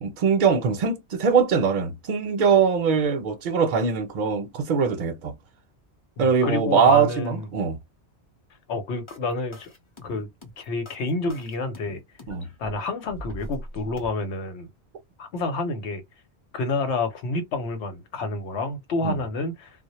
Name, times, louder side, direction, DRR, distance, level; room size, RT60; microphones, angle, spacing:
voice 1, 0.0-5.3 6.2-7.8 12.3-12.5 19.0-19.2, right 6 dB, 55° right, 0.6 m, -22 dB
voice 2, 6.2-7.5 8.7-9.7 10.0-10.3 10.6-12.0 12.6-14.7 15.2-16.0 16.5-19.7, left 3 dB, 90° left, 1.0 m, -29 dB
sound 1, 9.1-14.1, equal, 30° left, 0.7 m, -41 dB
2.1 x 2.0 x 2.9 m
omnidirectional pair, 1.1 m